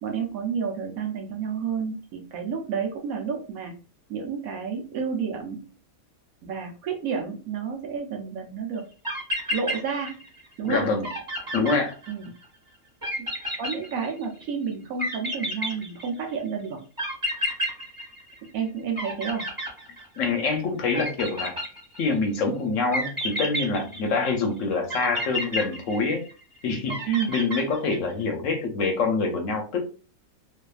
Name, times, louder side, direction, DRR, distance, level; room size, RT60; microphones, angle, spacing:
voice 1, 0.0-3.7 4.1-5.7 6.4-8.8 9.5-10.2 10.6-10.9 12.1-12.3 13.6-16.8 18.4-19.5 27.1-27.3, right 6 dB, 75° right, 2 dB, 1.1 m, -30 dB
sound 1, 8.8-8.9 9.0-10.4 10.7-10.8 11.0-12.4 13.0-14.4 15.0-16.3 17.0-18.6 18.9-20.4 20.9-22.2 22.9-24.3 24.9-26.4 26.9-28.1, equal, 25° right, 1.0 m, -31 dB
voice 2, 10.6-11.1 11.5-11.9 20.2-21.6 22.0-26.2 26.6-29.8, left 4 dB, 70° left, 3 dB, 0.9 m, -25 dB
2.7 x 2.4 x 2.3 m, 0.36 s
omnidirectional pair, 1.5 m